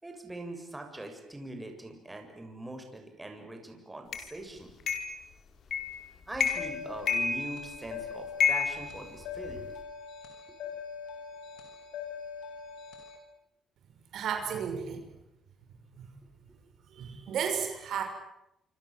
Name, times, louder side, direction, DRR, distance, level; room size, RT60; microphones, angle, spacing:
voice 1, 0.0-4.7 6.3-9.6, right 2 dB, 15° right, 4 dB, 7.1 m, -42 dB
sound 1, 4.1-4.3 4.9-5.2 5.7-6.0 6.3-6.8 7.1-7.9 8.4-9.6, left 6 dB, 60° left, 5.0 m, -29 dB
sound 2, 6.5-13.2, left 6 dB, 90° left, 7.1 m, -42 dB
voice 2, 14.1-15.0 16.1-16.2 16.9-18.0, right 7 dB, 70° right, 5 dB, 6.0 m, -33 dB
27.5 x 26.0 x 7.9 m, 0.85 s
cardioid pair, 90°, 0 cm